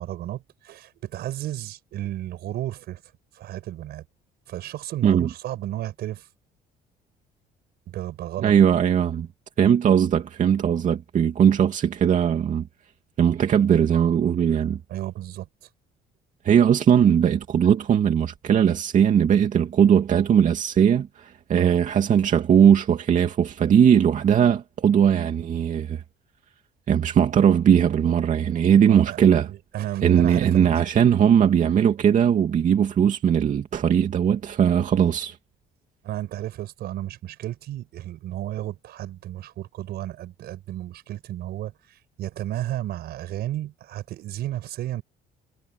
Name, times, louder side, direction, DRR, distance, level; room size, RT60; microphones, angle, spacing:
voice 1, 0.0-3.0 3.3-4.1 4.5-6.3 7.9-8.5 14.9-15.7 21.5-21.8 28.9-30.8 31.9-32.0 36.0-45.0, right 13 dB, 70° right, 5.2 m, -33 dB
voice 2, 8.4-9.3 9.6-12.6 13.2-14.8 16.4-26.0 26.9-29.5 30.0-35.4, right 8 dB, 50° right, 2.5 m, -19 dB
cardioid pair, 110°, 17 cm